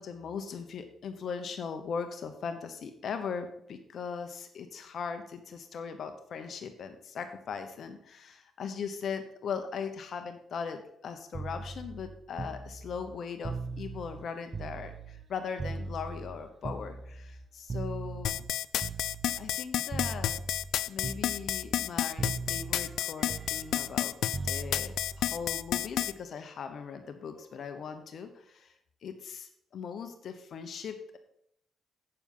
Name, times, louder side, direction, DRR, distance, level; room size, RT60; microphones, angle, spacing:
voice 1, 0.0-18.4 19.4-20.4 20.9-24.2 24.4-28.7 29.0-31.2, left 6 dB, 65° left, 7 dB, 1.0 m, -39 dB
sound 1, 11.3-15.3 15.6-19.6 19.9-20.7 21.0-21.9 22.2-26.2 27.4-27.6, right 3 dB, 40° right, 0.8 m, -40 dB
sound 2, 18.2-26.1, left 11 dB, 80° left, 0.3 m, -30 dB
8.6 x 7.1 x 5.5 m, 0.73 s
cardioid pair, 85°, 0 cm